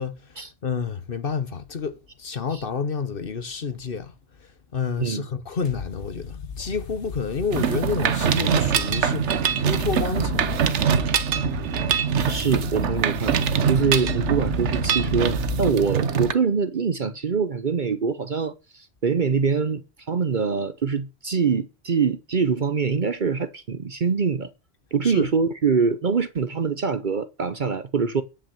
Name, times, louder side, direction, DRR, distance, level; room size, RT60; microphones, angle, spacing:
voice 1, 0.0-4.1 4.4-10.8 25.0-25.3, left 5 dB, 50° left, 1.2 m, -29 dB
sound 1, 5.6-15.7, left 5 dB, 65° left, 1.6 m, -34 dB
Mechanisms, 7.5-16.3, right 8 dB, 70° right, 1.2 m, -23 dB
voice 2, 11.9-13.4 13.7-19.8 20.1-24.5 24.9-28.2, right 5 dB, 45° right, 0.8 m, -24 dB
10.0 x 6.0 x 7.0 m
omnidirectional pair, 1.3 m